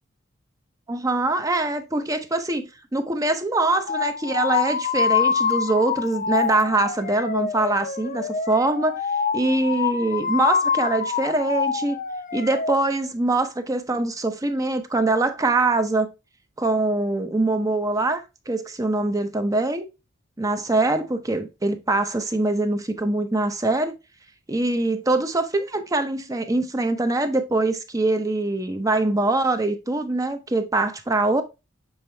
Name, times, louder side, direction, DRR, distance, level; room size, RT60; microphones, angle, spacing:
voice 1, 0.9-2.6 2.9-9.0 9.3-12.0 12.3-16.1 16.6-19.9 20.4-24.0 24.5-31.4, right 2 dB, 15° right, 0.6 m, -23 dB
sound 1, 3.9-12.8, left 6 dB, 40° left, 0.4 m, -25 dB
7.1 x 4.3 x 3.2 m
head